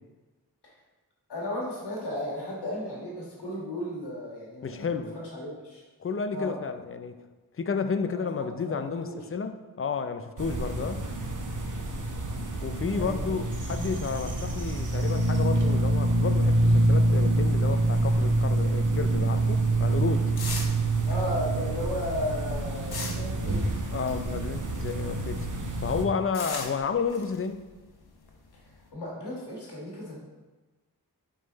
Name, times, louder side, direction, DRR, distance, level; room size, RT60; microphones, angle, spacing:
voice 1, 1.3-5.8 6.3-6.6 8.1-9.3 12.9-13.4 21.0-23.8 28.6-30.2, left 1 dB, 90° left, -4 dB, 1.7 m, -35 dB
voice 2, 4.6-5.2 6.0-7.2 7.6-11.1 12.6-20.3 23.9-25.5 25.8-27.7, left 5 dB, 35° left, 9 dB, 0.5 m, -31 dB
sound 1, 10.4-26.0, right 2 dB, 50° right, 1.0 m, -26 dB
sound 2, 20.3-25.2 25.5-28.9, left 4 dB, 70° left, 1.0 m, -41 dB
6.2 x 3.9 x 4.0 m, 1.2 s
cardioid pair, 40°, 39 cm